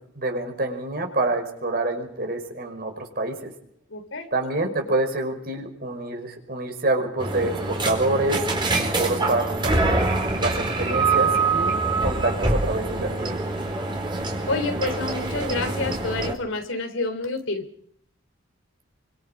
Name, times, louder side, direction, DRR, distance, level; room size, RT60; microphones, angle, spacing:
voice 1, 0.2-3.5 4.3-10.1 10.4-13.3, right 2 dB, 50° right, 4 dB, 5.5 m, -27 dB
voice 2, 3.9-4.3 14.5-17.6, left 3 dB, 75° left, 6 dB, 3.9 m, -28 dB
sound 1, 7.2-16.3, right 3 dB, 25° right, 4.5 m, -25 dB
27.0 x 25.0 x 5.2 m, 0.66 s
head